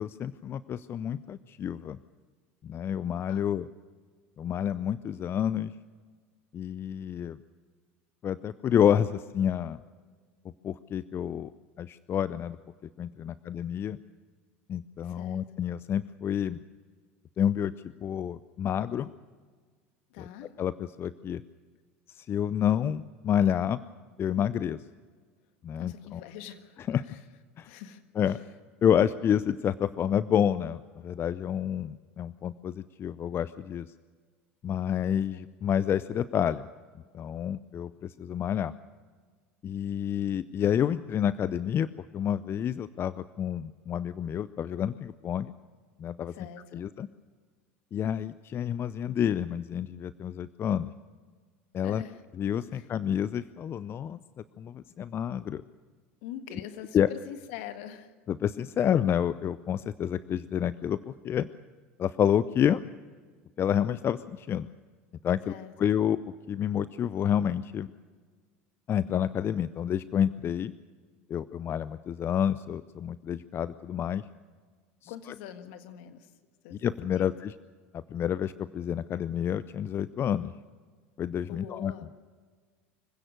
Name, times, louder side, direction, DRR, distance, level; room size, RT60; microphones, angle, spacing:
voice 1, 0.0-2.0 2.6-3.7 4.4-5.7 6.5-7.4 8.2-9.8 10.6-11.5 11.8-12.6 13.0-14.0 14.7-16.6 17.4-17.7 18.0-19.1 20.2-20.3 20.6-21.4 22.1-23.8 24.2-24.8 25.6-26.2 26.9-27.0 27.6-27.7 28.2-28.4 28.8-33.9 34.6-36.7 37.1-38.7 39.6-45.5 46.0-46.3 46.7-47.1 47.9-50.9 51.7-52.0 52.4-54.2 54.6-55.6 56.9-57.1 58.3-61.5 62.0-62.8 63.6-64.7 65.2-66.2 66.5-67.9 68.9-70.7 71.3-74.2 75.0-75.1 76.7-77.5 77.9-80.5 81.2-81.9, left 9 dB, 35° left, 16 dB, 0.5 m, -29 dB
voice 2, 15.0-15.5 20.1-20.5 25.8-27.2 27.6-28.4 35.3-35.4 46.3-46.9 51.8-52.2 52.7-52.9 56.2-58.1 65.5-65.7 75.1-76.3 76.6-76.8 77.1-77.3 81.5-82.2, left 10 dB, 65° left, 9 dB, 1.7 m, -44 dB
25.0 x 16.0 x 6.6 m, 1.5 s
hypercardioid pair, 80°, 7 cm